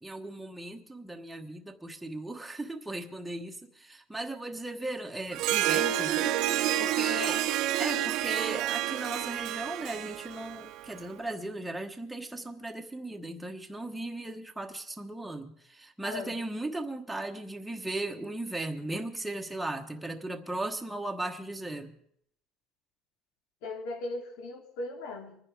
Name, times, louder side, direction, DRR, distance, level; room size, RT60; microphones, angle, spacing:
voice 1, 0.0-7.4 7.8-22.0, right 2 dB, 5° right, 2 dB, 1.3 m, -37 dB
Harp, 5.3-11.0, right 12 dB, 60° right, 0.9 m, -29 dB
voice 2, 7.1-7.5 16.0-16.3 23.6-25.4, left 2 dB, 75° left, 3 dB, 3.5 m, -38 dB
24.5 x 10.0 x 5.0 m, 0.69 s
cardioid pair, 150°, 0 cm